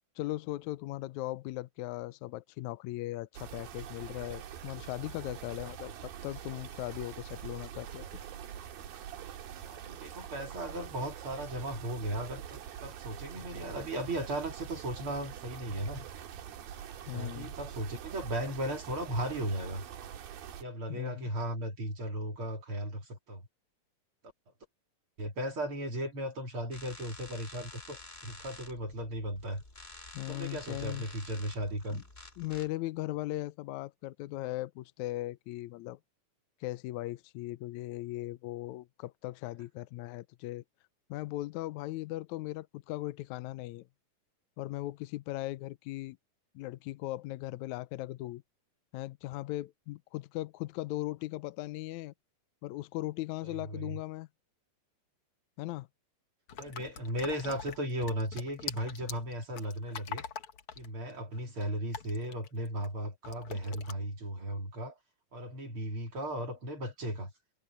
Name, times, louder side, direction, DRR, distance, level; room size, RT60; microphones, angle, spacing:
voice 1, 0.2-8.1 17.1-17.5 20.9-21.3 30.1-31.1 31.9-32.0 32.4-36.0 36.6-40.6 41.1-43.9 44.6-46.2 46.6-48.4 48.9-52.1 52.6-54.3 55.6-55.9, left 17 dB, 85° left, 1.7 m, -38 dB
sound 1, 3.3-20.6, right 9 dB, 85° right, 3.7 m, -45 dB
voice 2, 9.6-16.1 17.1-19.8 20.6-23.4 25.2-29.6 30.3-32.0 53.4-54.0 56.6-60.2 60.8-65.0 65.3-67.3, right 1 dB, 40° right, 3.8 m, -36 dB
Tattoo Machine Long, 26.7-32.7, left 2 dB, 15° left, 3.3 m, -50 dB
sound 2, 56.5-62.9 63.2-63.9, left 7 dB, 55° left, 1.8 m, -43 dB
omnidirectional pair, 4.0 m